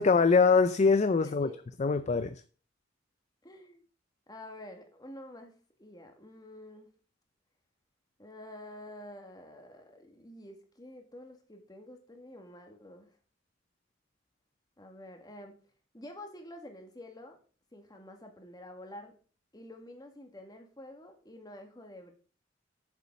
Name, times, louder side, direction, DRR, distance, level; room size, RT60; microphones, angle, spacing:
voice 1, 0.0-1.5 1.8-2.3, left 4 dB, 40° left, 0.4 m, -23 dB
voice 2, 1.2-1.7 3.4-3.9 4.3-6.9 8.2-13.1 14.8-15.6 15.9-17.4 17.7-19.1 19.5-22.1, left 1 dB, 20° left, 1.9 m, -48 dB
8.1 x 7.1 x 5.2 m
head